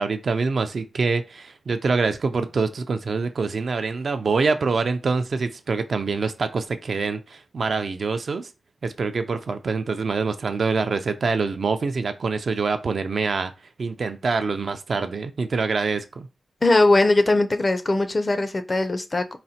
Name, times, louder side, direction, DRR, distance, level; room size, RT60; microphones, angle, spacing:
voice 1, 0.0-8.5 8.8-13.5 13.8-16.3, right 4 dB, 65° right, 0.4 m, -25 dB
voice 2, 16.6-19.4, left 2 dB, 35° left, 0.4 m, -20 dB
4.0 x 2.1 x 2.7 m
cardioid pair, 70°, 0 cm